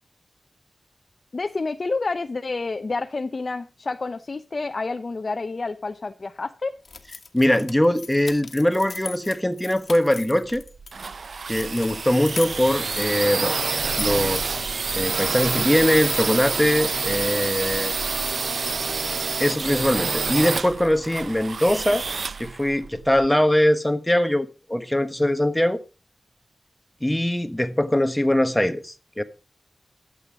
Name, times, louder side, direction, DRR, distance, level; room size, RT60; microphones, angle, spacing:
voice 1, 1.3-6.7, left 3 dB, 55° left, 0.7 m, -29 dB
sound 1, 6.8-10.9 11.5-14.7, left 4 dB, 70° left, 1.4 m, -39 dB
voice 2, 7.3-10.6 11.5-13.6 14.0-18.0 19.4-22.1 22.4-25.8 27.0-29.2, left 1 dB, 10° left, 1.2 m, -22 dB
sound 2, 10.5-23.3, right 4 dB, 75° right, 0.5 m, -27 dB
12.0 x 7.9 x 5.0 m
cardioid pair, 55°, 0 cm